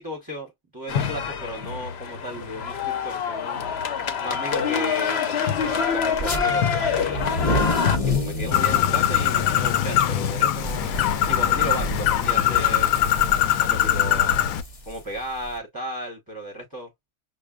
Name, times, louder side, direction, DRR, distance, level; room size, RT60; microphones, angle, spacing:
voice 1, 0.0-3.7 4.2-5.4 5.7-7.7 8.0-11.0 11.3-13.0 13.5-14.5 14.9-16.9, equal, 20° right, 0.6 m, -35 dB
sound 1, 0.9-8.0, left 7 dB, 60° left, 0.8 m, -25 dB
sound 2, 6.1-6.4 7.0-15.5, left 1 dB, 35° left, 0.7 m, -30 dB
Bird, 8.5-14.6, left 11 dB, 85° left, 1.0 m, -21 dB
6.2 x 2.2 x 2.3 m
omnidirectional pair, 1.4 m